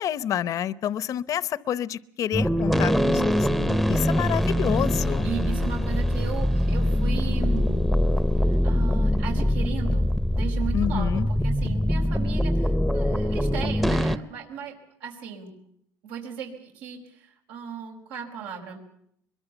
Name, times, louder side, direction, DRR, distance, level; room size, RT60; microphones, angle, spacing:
voice 1, 0.0-3.3 3.9-5.3 10.7-11.3, left 10 dB, 50° left, 18 dB, 0.8 m, -28 dB
sound 1, 2.3-14.2, equal, ahead, 0.8 m, -23 dB
voice 2, 4.9-7.9 8.3-15.5 16.0-18.8, right 7 dB, 90° right, 1 dB, 5.0 m, -37 dB
23.5 x 22.0 x 7.1 m, 0.70 s
cardioid pair, 130°, 7 cm